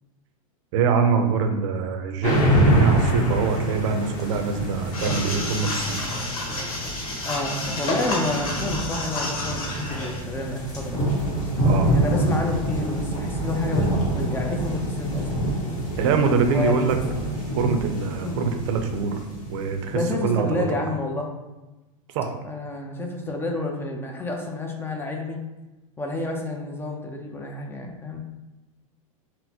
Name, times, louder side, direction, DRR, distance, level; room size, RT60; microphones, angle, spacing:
voice 1, 0.7-6.0 11.6-11.9 16.0-17.0 17.6-19.2 19.5-20.7 22.1-22.3, right 5 dB, 60° right, 6 dB, 0.5 m, -24 dB
sound 1, 2.2-20.0, right 1 dB, 40° left, 1.2 m, -26 dB
sound 2, 4.9-10.2, left 2 dB, 85° left, 0.9 m, -30 dB
voice 2, 7.2-11.1 11.8-15.3 16.5-16.9 18.2-18.5 19.9-21.3 22.4-25.4 26.0-28.2, left 2 dB, 10° left, 1 dB, 0.5 m, -29 dB
3.9 x 2.1 x 2.8 m, 1.1 s
hypercardioid pair, 110°, 18 cm